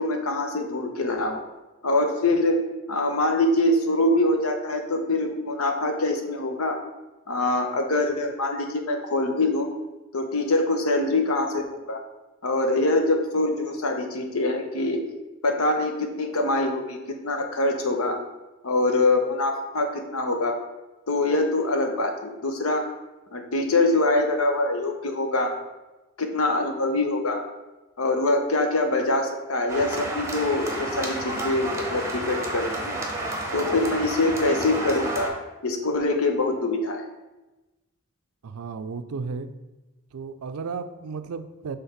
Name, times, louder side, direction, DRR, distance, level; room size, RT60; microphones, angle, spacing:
voice 1, 0.0-1.4 1.8-2.6 2.9-6.8 7.3-9.7 10.1-12.0 12.4-15.0 15.4-18.2 18.6-20.6 21.1-22.9 23.3-25.6 26.2-27.5 28.0-33.0 33.5-35.4 35.6-37.1, left 2 dB, 80° left, 5 dB, 0.9 m, -24 dB
sound 1, 29.7-35.3, right 1 dB, 15° right, 0.8 m, -31 dB
voice 2, 38.4-39.5 40.1-41.8, right 5 dB, 85° right, 11 dB, 0.4 m, -34 dB
5.7 x 3.4 x 5.7 m, 1.1 s
head